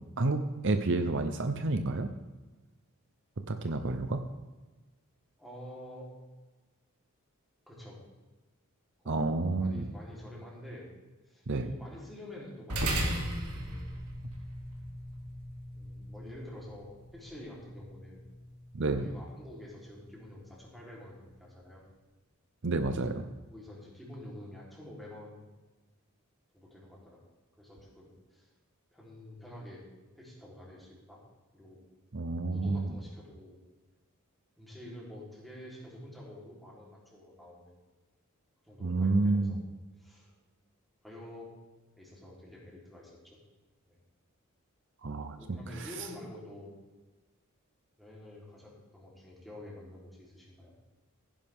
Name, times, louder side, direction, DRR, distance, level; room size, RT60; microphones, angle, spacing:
voice 1, 0.2-2.1 3.5-4.2 9.1-9.9 11.5-11.7 18.7-19.1 22.6-23.2 32.1-32.9 38.8-39.6 45.0-45.9, right 2 dB, 55° right, 8 dB, 0.7 m, -30 dB
voice 2, 5.4-6.1 7.7-8.0 9.0-9.2 9.6-10.9 11.3-13.9 15.7-18.2 19.0-21.8 23.0-23.2 23.5-25.5 26.5-27.2 27.6-28.5 28.9-29.9 30.1-31.2 31.5-31.8 32.5-33.6 34.6-37.7 38.6-39.6 40.0-40.3 41.0-41.5 42.0-43.4 43.9-44.0 45.4-46.7 48.0-50.7, left 1 dB, ahead, -5 dB, 3.8 m, -48 dB
sound 1, 12.7-21.4, right 1 dB, 90° right, 3.0 m, -39 dB
16.0 x 10.5 x 3.7 m, 1.2 s
head